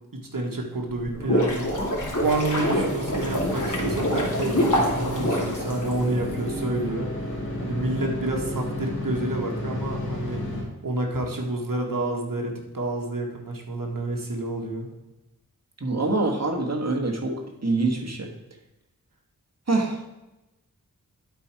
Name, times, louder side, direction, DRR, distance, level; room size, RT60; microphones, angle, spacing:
voice 1, 0.1-1.7 2.2-10.4 10.8-14.9, right 2 dB, 65° right, 1 dB, 1.6 m, -29 dB
Bubbling Large A, 0.9-6.3, equal, 55° left, 2.5 m, -25 dB
sound 1, 3.1-10.6, left 1 dB, 85° left, 2.9 m, -32 dB
voice 2, 15.8-18.3 19.7-20.0, right 3 dB, 45° right, 3 dB, 1.7 m, -25 dB
11.5 x 4.3 x 4.7 m, 0.98 s
wide cardioid pair, 40°, 36 cm